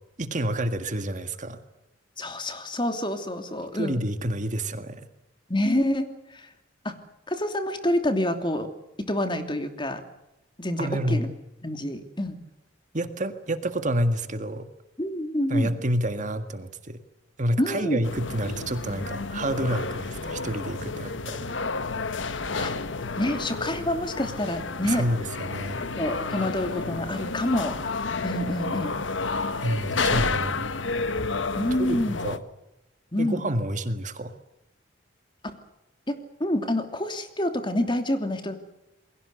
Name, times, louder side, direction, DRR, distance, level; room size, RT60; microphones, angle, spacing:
voice 1, 0.2-1.6 3.8-5.1 10.8-11.3 12.9-14.7 15.5-17.0 17.4-21.5 24.8-25.8 29.6-30.7 31.8-32.4 33.2-34.3, right 1 dB, 40° right, 9 dB, 1.9 m, -28 dB
voice 2, 2.2-4.0 5.5-6.5 6.8-7.0 7.3-8.7 9.0-10.0 10.6-11.3 11.6-12.4 15.0-15.7 17.6-18.0 22.6-22.7 23.2-25.0 26.0-27.8 28.2-29.0 31.6-32.2 33.1-33.4 36.1-38.6, left 1 dB, 25° left, 7 dB, 2.9 m, -27 dB
sound 1, 18.0-32.4, left 3 dB, 85° left, 1.5 m, -31 dB
29.0 x 22.0 x 6.8 m, 0.92 s
head